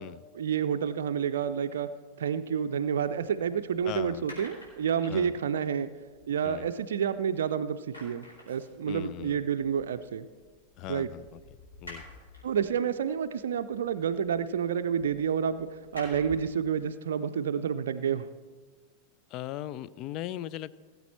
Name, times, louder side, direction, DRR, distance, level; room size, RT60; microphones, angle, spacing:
voice 1, 0.3-1.9 2.2-5.9 6.3-10.3 10.9-11.1 12.4-15.7 15.9-18.3, right 7 dB, 60° right, 9 dB, 0.4 m, -29 dB
sound 1, 2.9-7.4 7.7-16.6, left 1 dB, 75° left, 4.3 m, -52 dB
voice 2, 3.8-4.2 5.1-5.3 6.4-6.7 8.9-9.4 10.8-11.4 11.8-12.0 19.3-20.8, left 12 dB, 40° left, 17 dB, 0.4 m, -38 dB
17.5 x 8.1 x 4.4 m, 1.4 s
figure-of-eight pair, 90°, 0 cm